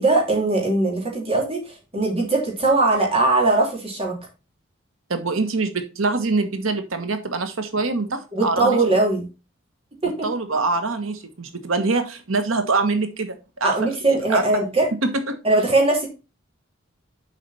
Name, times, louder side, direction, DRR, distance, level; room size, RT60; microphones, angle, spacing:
voice 1, 0.0-4.2 8.3-9.3 10.0-10.3 13.6-14.9 15.4-16.1, right 2 dB, 30° right, -1 dB, 3.2 m, -20 dB
voice 2, 5.1-8.8 10.2-13.7 14.1-14.4 15.0-15.4, right 3 dB, 90° right, 8 dB, 1.4 m, -24 dB
7.4 x 5.1 x 4.3 m, 0.29 s
head